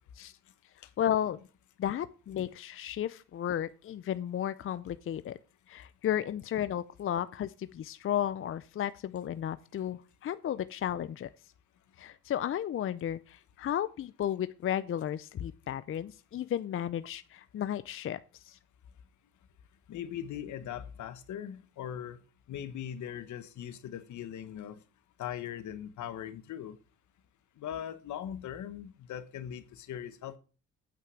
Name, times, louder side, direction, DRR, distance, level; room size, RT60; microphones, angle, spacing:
voice 1, 1.0-1.5 1.8-5.4 5.7-11.3 12.0-18.6, left 10 dB, 45° left, 0.5 m, -33 dB
voice 2, 19.9-22.2 22.5-24.8 25.2-26.8 27.6-30.4, left 10 dB, 75° left, 1.1 m, -40 dB
8.9 x 5.8 x 6.2 m
cardioid pair, 90°, 30 cm